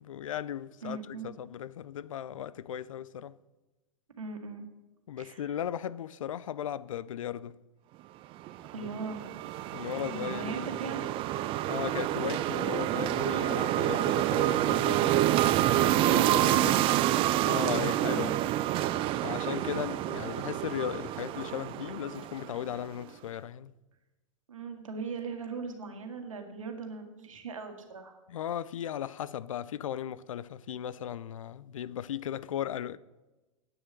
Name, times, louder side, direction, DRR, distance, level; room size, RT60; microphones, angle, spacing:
voice 1, 0.0-3.3 5.1-7.5 9.7-10.7 11.7-16.9 17.5-18.3 19.2-23.7 28.3-33.0, left 10 dB, 80° left, 0.5 m, -37 dB
voice 2, 0.8-1.3 4.2-4.6 5.2-5.5 8.7-9.3 9.9-11.1 18.0-18.4 24.5-28.1, right 4 dB, 85° right, 1.8 m, -39 dB
sound 1, 8.5-22.8, right 14 dB, 35° right, 0.4 m, -28 dB
9.2 x 6.5 x 7.5 m
hypercardioid pair, 110°, 17 cm